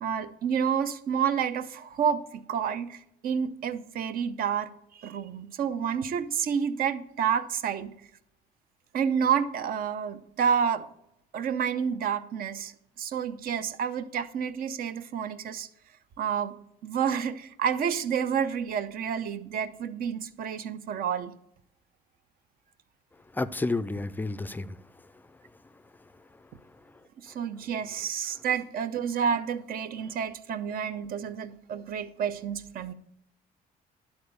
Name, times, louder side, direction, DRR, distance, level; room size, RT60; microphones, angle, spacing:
voice 1, 0.0-7.9 8.9-10.9 11.3-12.7 13.0-15.7 16.2-16.5 16.8-21.3 27.2-32.9, right 7 dB, 60° right, 0.7 m, -29 dB
voice 2, 23.3-24.8, left 2 dB, 10° left, 0.4 m, -30 dB
11.5 x 4.4 x 6.8 m
cardioid pair, 110°, 17 cm